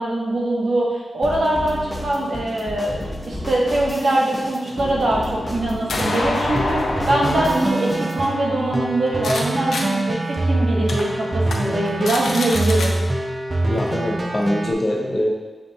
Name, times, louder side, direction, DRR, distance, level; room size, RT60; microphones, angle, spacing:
voice 1, 0.0-3.0 3.3-6.8 7.1-13.0, right 1 dB, 70° right, -3 dB, 1.0 m, -22 dB
sound 1, 1.2-8.3, left 1 dB, 15° left, 0.9 m, -32 dB
sound 2, 4.7-9.4 9.7-9.8 10.3-10.4 10.9-11.0 11.4-11.6 11.9-12.9, left 2 dB, 85° left, 0.6 m, -28 dB
sound 3, 6.0-14.7, right 1 dB, 35° right, 0.5 m, -24 dB
voice 2, 13.7-15.3, left 1 dB, 40° left, -1 dB, 0.8 m, -23 dB
7.0 x 2.5 x 2.7 m, 1.2 s
cardioid pair, 50°, 0 cm